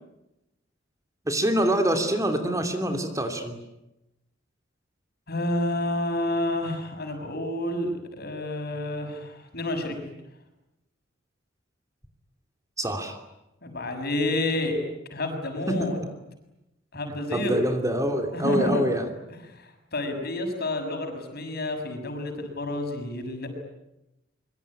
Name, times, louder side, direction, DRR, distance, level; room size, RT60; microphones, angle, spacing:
voice 1, 1.3-3.6 12.8-13.2 15.7-15.9 17.3-19.0, right 1 dB, 15° right, 6 dB, 2.8 m, -25 dB
voice 2, 5.3-10.0 13.6-14.8 15.1-16.0 16.9-17.6 18.3-18.8 19.5-23.5, left 1 dB, 55° left, 5 dB, 6.7 m, -29 dB
25.5 x 24.0 x 9.8 m, 0.90 s
head